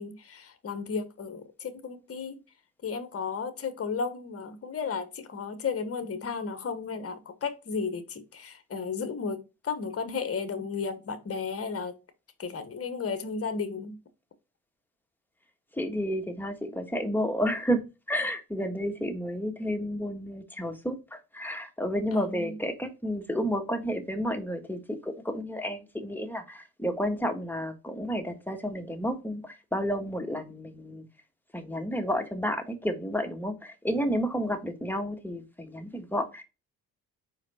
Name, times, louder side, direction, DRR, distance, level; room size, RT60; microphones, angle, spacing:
voice 1, 0.0-2.4 2.8-11.9 12.4-14.0 22.1-22.5, left 5 dB, 30° left, 1.2 m, -34 dB
voice 2, 15.7-17.8 18.1-31.0 31.5-36.4, equal, 5° left, 1.5 m, -31 dB
4.8 x 4.8 x 4.3 m
hypercardioid pair, 50°, 44 cm